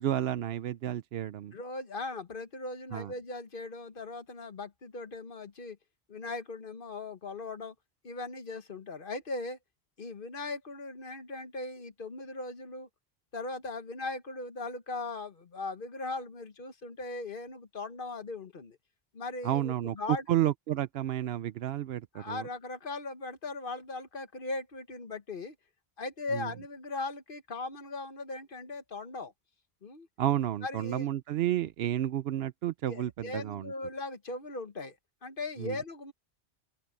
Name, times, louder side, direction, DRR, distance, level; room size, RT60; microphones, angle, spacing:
voice 1, 0.0-1.5 2.9-3.1 19.4-22.5 26.3-26.5 30.2-33.7 35.6-35.8, right 12 dB, 75° right, 0.8 m, -31 dB
voice 2, 1.5-5.8 6.1-7.7 8.0-9.6 10.0-12.9 13.3-18.8 19.1-20.2 22.1-25.5 26.0-29.3 29.8-30.1 30.6-31.1 32.9-35.0 35.2-36.1, left 3 dB, 55° left, 1.4 m, -39 dB
open air
omnidirectional pair, 1.1 m